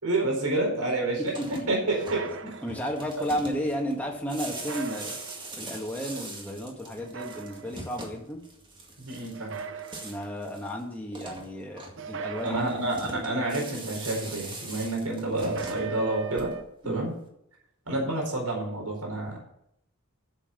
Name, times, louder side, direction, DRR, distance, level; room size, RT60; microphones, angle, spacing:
voice 1, 0.0-2.3 9.0-9.6 12.4-16.5 16.8-17.1 17.9-19.4, right 2 dB, 85° right, 0 dB, 4.4 m, -29 dB
sound 1, 1.2-16.9, right 2 dB, 20° right, 2.0 m, -43 dB
sound 2, 1.9-3.1 4.5-5.7 7.0-8.0 9.3-10.5 12.0-13.3 15.4-16.6, right 5 dB, 55° right, 0.7 m, -39 dB
voice 2, 2.6-5.2 5.6-8.4 10.0-12.7 16.8-17.1, equal, 5° left, -1 dB, 1.9 m, -33 dB
10.0 x 7.4 x 7.1 m, 0.76 s
head